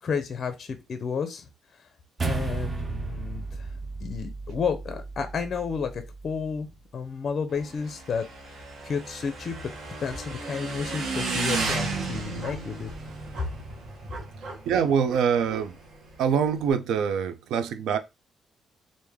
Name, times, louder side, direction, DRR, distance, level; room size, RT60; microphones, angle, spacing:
voice 1, 0.0-1.5 1.8-1.9 2.2-3.7 4.0-6.7 6.9-8.2 8.5-8.6 8.8-9.6 10.0-12.9, left 6 dB, 35° left, 0.5 m, -31 dB
sound 1, 2.2-6.7, right 4 dB, 20° right, 0.4 m, -34 dB
Motorcycle / Engine, 7.5-16.7, right 3 dB, 60° right, 1.0 m, -34 dB
voice 2, 14.7-15.8 16.2-18.0, right 7 dB, 80° right, 0.4 m, -24 dB
3.2 x 2.5 x 3.5 m
cardioid pair, 155°, 0 cm